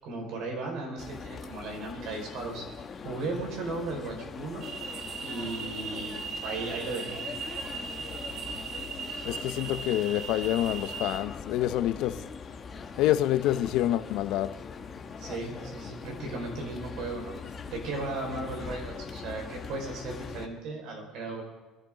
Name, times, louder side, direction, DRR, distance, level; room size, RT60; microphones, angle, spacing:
voice 1, 0.0-2.6 3.0-4.6 5.2-7.2 15.2-17.3 17.7-21.4, right 3 dB, 70° right, 5.2 m, -36 dB
sound 1, 1.0-20.5, left 5 dB, 30° left, 1.2 m, -42 dB
sound 2, 4.6-11.2, right 5 dB, 45° right, 1.0 m, -38 dB
voice 2, 9.3-12.3 13.0-14.6, left 13 dB, 65° left, 0.6 m, -27 dB
22.5 x 11.5 x 3.9 m
cardioid pair, 125°, 0 cm